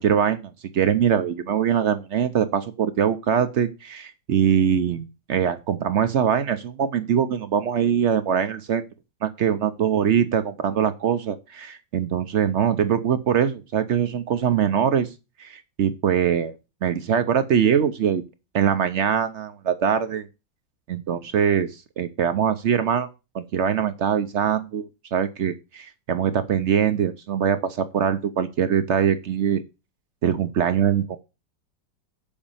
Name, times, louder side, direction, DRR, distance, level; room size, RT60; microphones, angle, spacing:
voice 1, 0.0-8.9 9.2-15.1 15.4-16.5 16.8-18.2 18.5-20.3 20.9-23.1 23.3-29.6 30.2-31.2, right 8 dB, 65° right, 10 dB, 0.7 m, -22 dB
7.0 x 5.2 x 7.1 m, 0.28 s
omnidirectional pair, 2.0 m